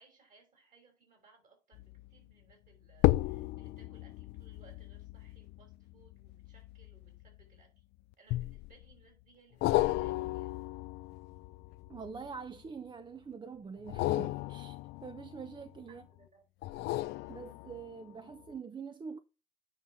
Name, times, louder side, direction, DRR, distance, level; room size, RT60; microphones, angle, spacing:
voice 1, 0.0-7.8 8.2-10.5 15.9-16.5, right 4 dB, 50° right, 5.5 m, -64 dB
sound 1, 1.7-2.1 2.9-7.6 8.3-8.9 9.6-12.6 13.8-15.9 16.6-18.0 18.5-18.6, left 17 dB, 85° left, 0.5 m, -34 dB
voice 2, 11.9-16.0 17.3-19.2, right 5 dB, 25° right, 0.7 m, -45 dB
9.3 x 5.6 x 3.6 m
cardioid pair, 110°, 17 cm